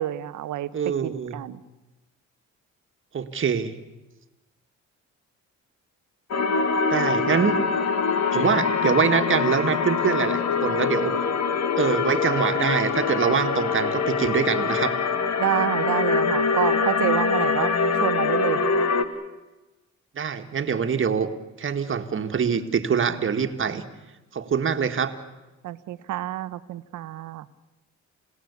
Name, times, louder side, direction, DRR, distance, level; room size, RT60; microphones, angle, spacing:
voice 1, 0.0-1.6 15.4-17.7 18.0-18.6 25.6-27.5, right 14 dB, 80° right, 13 dB, 1.0 m, -28 dB
voice 2, 0.7-1.4 3.1-3.7 6.9-7.6 8.3-11.1 11.8-15.0 20.2-21.3 21.6-23.8 24.3-25.1, right 6 dB, 40° right, 7 dB, 1.9 m, -24 dB
sound 1, 6.3-19.1, left 5 dB, 60° left, 1.7 m, -24 dB
28.0 x 17.0 x 8.4 m, 1.1 s
cardioid pair, 90°, 30 cm